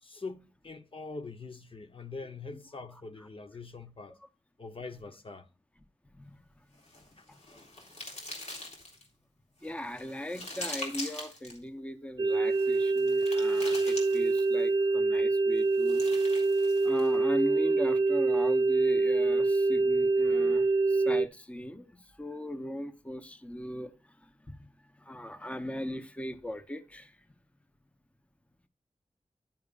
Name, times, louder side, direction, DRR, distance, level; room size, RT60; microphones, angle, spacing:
voice 1, 0.0-4.2 4.6-5.5 7.2-7.7, left 3 dB, 50° left, 0.8 m, -43 dB
voice 2, 6.1-6.5 7.3-7.4 9.6-16.3 16.8-23.9 24.2-24.7 25.0-27.2, left 1 dB, 10° left, 0.8 m, -39 dB
sound 1, 6.8-9.1 9.6-11.6 12.5-14.6 15.6-17.1, left 1 dB, 75° left, 3.4 m, -43 dB
sound 2, 12.2-21.2, right 3 dB, 35° right, 0.6 m, -25 dB
10.5 x 10.5 x 2.4 m
wide cardioid pair, 100°, 12 cm